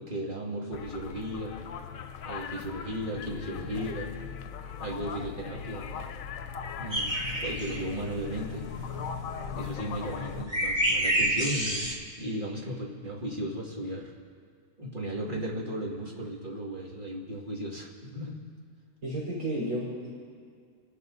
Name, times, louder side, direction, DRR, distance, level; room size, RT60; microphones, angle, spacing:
voice 1, 0.0-1.6 2.2-4.1 4.8-5.9 6.8-8.7 9.5-11.9 12.2-14.1 14.8-18.4, right 1 dB, 35° right, -3 dB, 2.6 m, -35 dB
sound 1, 0.7-10.4, left 6 dB, 85° left, 1.2 m, -39 dB
sound 2, 6.9-11.9, right 1 dB, 20° right, 2.0 m, -29 dB
voice 2, 19.0-20.1, right 1 dB, 80° right, -9 dB, 4.4 m, -32 dB
29.5 x 11.5 x 4.0 m, 2.1 s
omnidirectional pair, 1.4 m